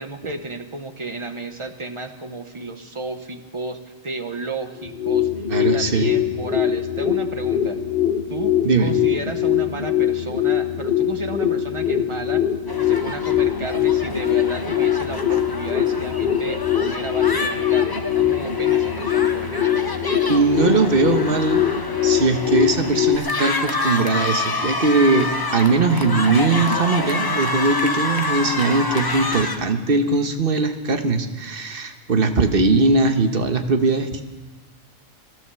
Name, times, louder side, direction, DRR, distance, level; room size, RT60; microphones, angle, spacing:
voice 1, 0.0-3.8 4.0-5.3 5.6-7.8 8.3-12.4 12.8-19.8, right 2 dB, 25° right, 7 dB, 0.9 m, -33 dB
sound 1, 4.8-23.2, left 10 dB, 50° left, 1.1 m, -22 dB
voice 2, 5.5-6.1 8.6-8.9 20.3-21.6 22.0-34.2, right 3 dB, 45° right, 7 dB, 1.2 m, -20 dB
sound 2, 12.7-29.6, left 2 dB, 20° left, 0.8 m, -28 dB
17.0 x 12.0 x 6.9 m, 1.2 s
omnidirectional pair, 1.4 m